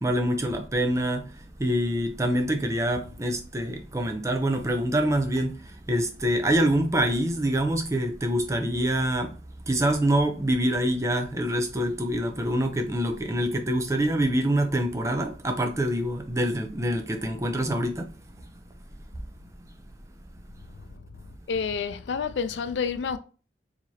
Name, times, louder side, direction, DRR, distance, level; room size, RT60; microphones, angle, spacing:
voice 1, 0.0-9.3 9.7-18.1, right 1 dB, 15° right, 0.5 m, -25 dB
voice 2, 21.5-23.2, left 5 dB, 85° left, 0.4 m, -29 dB
4.6 x 2.9 x 2.7 m
head